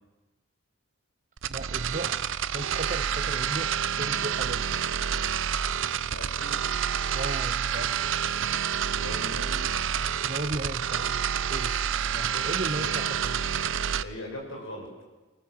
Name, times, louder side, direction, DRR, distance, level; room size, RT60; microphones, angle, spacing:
sound 1, 1.4-14.0, right 8 dB, 80° right, 0.6 m, -28 dB
voice 1, 1.5-2.2 2.5-4.6 7.1-8.2 10.2-11.7 12.1-13.6, right 2 dB, 40° right, 7 dB, 0.9 m, -36 dB
voice 2, 5.9-6.6 8.9-9.6 12.2-13.1 14.0-14.9, left 1 dB, 80° left, 1 dB, 6.1 m, -40 dB
24.5 x 18.5 x 7.8 m, 1.2 s
head